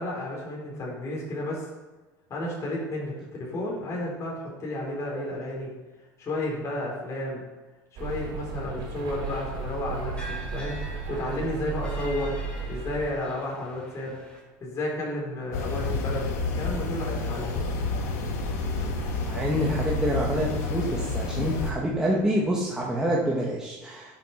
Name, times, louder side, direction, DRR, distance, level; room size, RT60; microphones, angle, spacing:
voice 1, 0.0-1.7 2.3-5.7 6.2-7.4 7.9-12.3 12.7-14.2 14.6-16.3 16.5-17.7, left 1 dB, 35° left, -4 dB, 4.6 m, -32 dB
sound 1, 8.0-13.1, right 4 dB, 60° right, 3.7 m, -34 dB
sound 2, 9.2-14.4, equal, 10° left, 4.2 m, -45 dB
sound 3, 15.5-21.7, left 3 dB, 85° left, 2.0 m, -29 dB
voice 2, 19.3-24.2, equal, 10° right, -5 dB, 2.2 m, -27 dB
11.0 x 7.9 x 6.1 m, 1.2 s
supercardioid pair, 100°, 9 cm